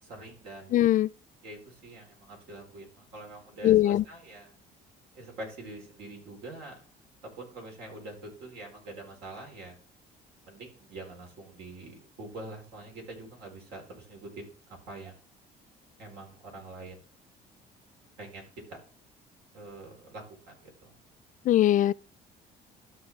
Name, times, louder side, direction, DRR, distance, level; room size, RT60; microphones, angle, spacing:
voice 1, 0.0-0.8 1.4-4.5 5.1-6.8 7.2-9.8 10.5-15.2 16.0-17.1 18.2-18.8 19.5-21.0, right 2 dB, 85° right, 4.4 m, -45 dB
voice 2, 0.7-1.1 3.6-4.0 21.5-21.9, left 13 dB, 50° left, 0.4 m, -21 dB
13.0 x 5.9 x 3.6 m
cardioid pair, 110°, 17 cm